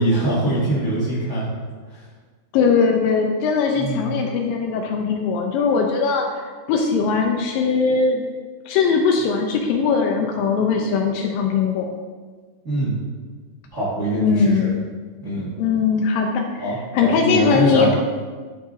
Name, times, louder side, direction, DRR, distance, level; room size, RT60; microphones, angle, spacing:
voice 1, 0.0-1.5 1.9-2.0 3.8-4.1 12.6-12.9 13.7-14.7 15.2-15.5 16.6-17.9, right 1 dB, 70° right, -8 dB, 0.7 m, -23 dB
voice 2, 2.5-6.3 6.7-8.3 8.7-11.9 14.2-14.8 15.6-18.0, left 5 dB, 90° left, 2 dB, 2.0 m, -20 dB
13.5 x 5.5 x 2.6 m, 1.5 s
omnidirectional pair, 4.8 m